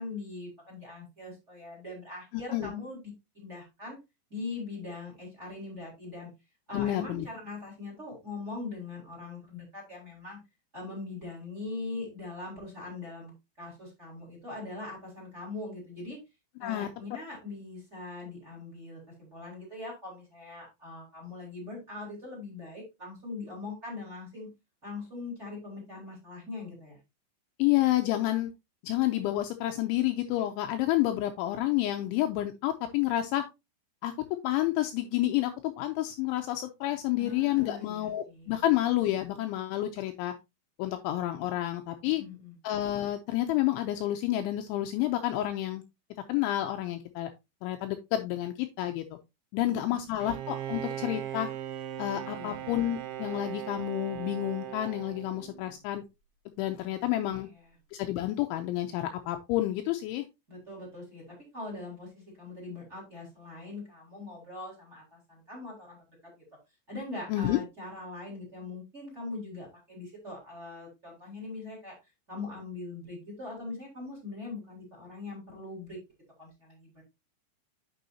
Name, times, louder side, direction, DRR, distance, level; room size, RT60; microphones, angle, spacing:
voice 1, 0.0-3.0 3.3-4.0 4.3-6.3 6.7-10.4 10.7-16.2 16.6-24.5 24.8-27.0 37.2-38.6 42.2-42.5 49.6-50.2 52.3-52.7 56.8-56.9 57.2-57.6 60.5-66.0 66.9-71.9 72.3-76.0 76.4-77.0, left 3 dB, 15° right, -1 dB, 3.5 m, -41 dB
voice 2, 6.7-7.3 16.6-16.9 27.6-28.5 28.8-33.4 34.0-34.1 34.4-40.3 40.8-42.2 42.6-45.8 46.3-47.3 47.6-49.0 49.5-51.5 52.0-56.0 56.6-57.5 57.9-60.3 67.3-67.6, left 14 dB, 80° left, 6 dB, 2.8 m, -29 dB
Bowed string instrument, 50.2-55.8, right 11 dB, 80° right, 3.2 m, -38 dB
9.3 x 6.2 x 2.8 m, 0.23 s
omnidirectional pair, 5.8 m